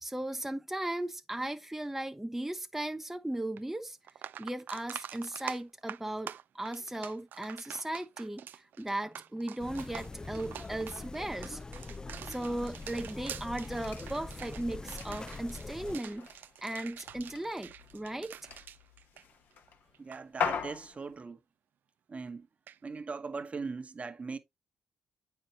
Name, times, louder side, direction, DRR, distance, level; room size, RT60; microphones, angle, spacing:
voice 1, 0.0-4.0 4.4-11.6 12.2-16.3 16.6-18.3, right 1 dB, 10° right, 0.8 m, -37 dB
sound 1, 3.6-3.7 4.0-19.7 19.9-20.2 22.7-22.8, right 10 dB, 65° right, 0.4 m, -46 dB
sound 2, 9.6-16.0, left 3 dB, 20° left, 0.4 m, -43 dB
sound 3, 13.1-21.2, left 7 dB, 65° left, 1.1 m, -41 dB
voice 2, 20.0-21.4 22.1-22.5 22.8-24.4, right 4 dB, 35° right, 1.1 m, -39 dB
8.7 x 5.7 x 2.9 m
hypercardioid pair, 50°, 4 cm